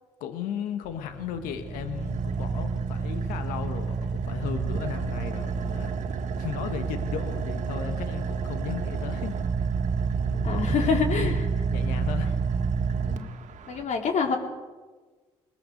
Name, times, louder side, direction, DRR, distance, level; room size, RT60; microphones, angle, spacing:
voice 1, 0.2-6.0 6.4-9.3 10.3-11.4 11.7-12.4, left 8 dB, 80° left, 7 dB, 1.7 m, -35 dB
Car / Idling, 0.9-13.8, right 5 dB, 60° right, 1.9 m, -29 dB
voice 2, 10.4-11.4 13.1-13.3 13.7-14.4, left 5 dB, 60° left, 2 dB, 4.3 m, -26 dB
21.5 x 21.0 x 6.6 m, 1.3 s
supercardioid pair, 65°, 14 cm